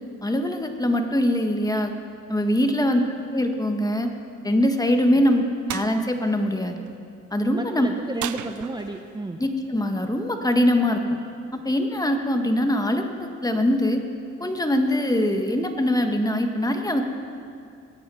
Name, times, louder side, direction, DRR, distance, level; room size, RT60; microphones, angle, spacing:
voice 1, 0.2-1.9 2.3-3.0 3.3-4.1 4.4-5.4 5.7-6.8 7.3-7.9 9.4-11.2 11.5-14.0 14.4-17.0, left 1 dB, 10° left, 5 dB, 1.5 m, -22 dB
sound 1, 5.7-5.9 8.2-9.1, right 12 dB, 75° right, 0.6 m, -34 dB
voice 2, 7.5-9.4, right 2 dB, 15° right, 4 dB, 0.8 m, -32 dB
22.0 x 9.3 x 5.6 m, 2.4 s
cardioid pair, 90°, 30 cm